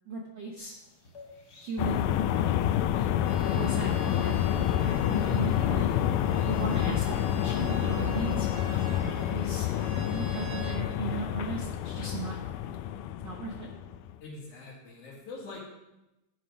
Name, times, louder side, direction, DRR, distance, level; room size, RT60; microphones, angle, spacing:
voice 1, 0.1-0.7 1.6-2.6 3.5-5.9 6.4-9.7 10.1-12.3 13.2-13.7, right 4 dB, 85° right, -1 dB, 1.0 m, -37 dB
sound 1, 0.6-10.4, left 3 dB, 45° left, 1.4 m, -53 dB
sound 2, 1.8-14.1, left 11 dB, 90° left, 2.1 m, -28 dB
Bowed string instrument, 3.2-10.8, right 2 dB, 70° right, 2.8 m, -46 dB
voice 2, 14.2-15.6, left 3 dB, 70° left, -3 dB, 3.3 m, -43 dB
11.5 x 5.9 x 5.1 m, 0.97 s
omnidirectional pair, 3.6 m